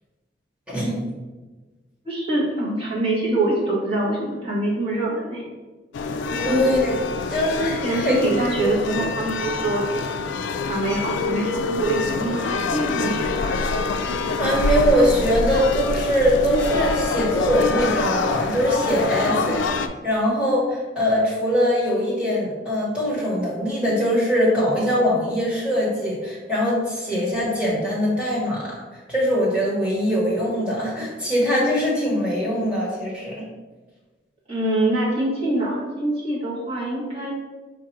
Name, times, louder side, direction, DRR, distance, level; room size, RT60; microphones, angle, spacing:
voice 1, 2.0-5.4 6.3-6.6 7.8-9.8 10.6-13.6 34.5-37.3, right 2 dB, 30° right, -6 dB, 1.3 m, -25 dB
sound 1, 5.9-19.9, left 4 dB, 90° left, 0.3 m, -25 dB
voice 2, 6.4-6.9 7.3-8.2 8.9-9.0 14.1-33.3, equal, 5° right, -7 dB, 1.3 m, -22 dB
4.6 x 2.5 x 4.5 m, 1.2 s
head